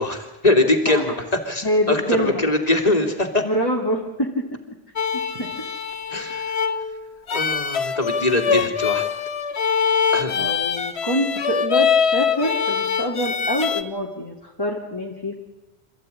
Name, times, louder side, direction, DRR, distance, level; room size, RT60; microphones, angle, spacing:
voice 1, 0.0-3.4 6.1-6.4 7.3-9.1 10.1-10.4, left 2 dB, 40° left, 3 dB, 3.1 m, -22 dB
voice 2, 1.6-2.4 3.4-4.8 5.3-5.7 8.5-8.7 10.3-15.3, equal, 20° left, -3 dB, 2.7 m, -26 dB
sound 1, 5.0-13.8, left 6 dB, 90° left, 1.4 m, -23 dB
27.0 x 15.0 x 9.9 m, 1.0 s
omnidirectional pair, 1.1 m